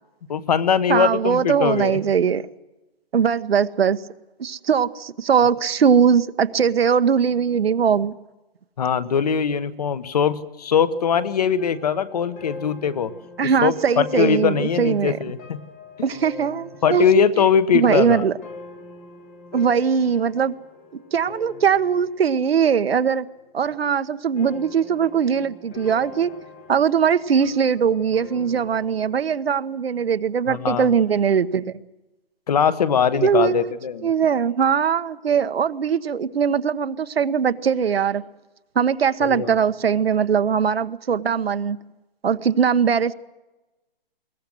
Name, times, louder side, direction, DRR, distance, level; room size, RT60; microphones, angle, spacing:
voice 1, 0.3-2.0 8.8-13.1 13.6-15.6 16.8-18.3 30.5-30.9 32.5-34.1 39.2-39.6, left 7 dB, 40° left, 1.1 m, -21 dB
voice 2, 0.9-2.4 3.1-4.0 4.4-8.1 13.4-15.2 16.0-17.1 17.7-18.3 19.5-20.6 21.1-23.3 23.5-26.3 26.7-31.8 33.2-33.7 34.0-38.2 38.7-41.8 42.2-43.1, right 7 dB, 85° right, 1.2 m, -20 dB
sound 1, 11.6-23.0 23.3-23.9 24.4-29.7, left 3 dB, 10° left, 0.7 m, -43 dB
22.0 x 18.5 x 7.7 m
hypercardioid pair, 175°, 30 cm